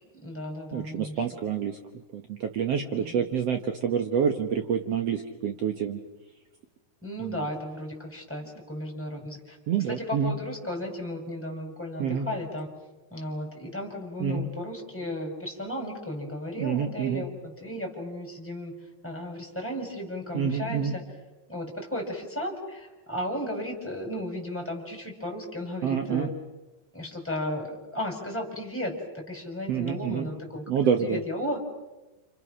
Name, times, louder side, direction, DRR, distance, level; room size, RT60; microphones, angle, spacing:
voice 1, 0.1-1.2 2.9-3.1 7.0-9.6 9.9-12.7 13.1-18.7 19.0-21.0 21.5-26.3 26.9-30.7 31.0-31.6, left 1 dB, 5° left, 0 dB, 5.0 m, -34 dB
voice 2, 0.7-1.8 2.1-6.0 7.2-7.4 9.7-10.3 12.0-12.3 14.2-14.4 16.6-17.2 20.3-20.9 25.8-26.3 29.7-30.3 30.7-31.2, right 7 dB, 70° right, 5 dB, 1.5 m, -27 dB
30.0 x 29.0 x 6.3 m, 1.1 s
omnidirectional pair, 4.9 m